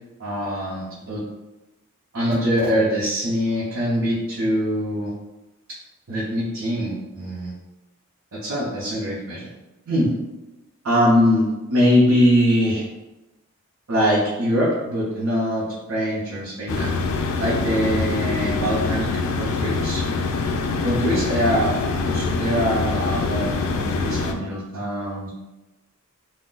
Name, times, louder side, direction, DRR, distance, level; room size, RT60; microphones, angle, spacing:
voice 1, 0.2-1.2 2.1-5.1 6.1-7.5 8.3-9.4 9.9-10.1 10.8-12.8 13.9-16.9 17.4-20.0 20.8-21.7 22.0-25.3, equal, 75° right, -8 dB, 0.7 m, -22 dB
sound 1, 16.7-24.3, left 4 dB, 75° left, 0.3 m, -24 dB
2.4 x 2.1 x 3.7 m, 1.0 s
head